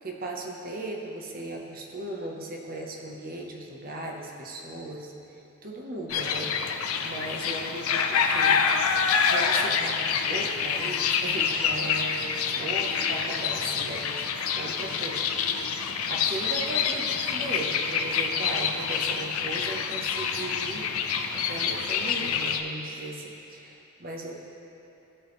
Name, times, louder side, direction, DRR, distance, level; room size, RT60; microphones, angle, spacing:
voice 1, 0.0-5.1 5.6-6.5 7.0-8.6 9.3-14.2 14.5-15.7 16.1-20.9 21.3-24.4, right 1 dB, 40° right, 0 dB, 0.9 m, -37 dB
sound 1, 6.1-22.6, left 6 dB, 75° left, 0.5 m, -27 dB
15.0 x 5.2 x 3.1 m, 2.8 s
head